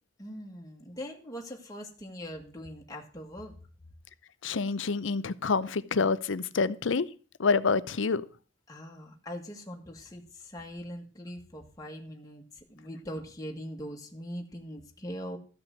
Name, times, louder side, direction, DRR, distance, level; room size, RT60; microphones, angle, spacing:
voice 1, 0.2-3.6 8.7-15.4, equal, 20° left, 1.8 m, -41 dB
voice 2, 4.4-7.1 7.4-8.2, left 4 dB, 75° left, 0.6 m, -27 dB
14.0 x 6.0 x 7.8 m
head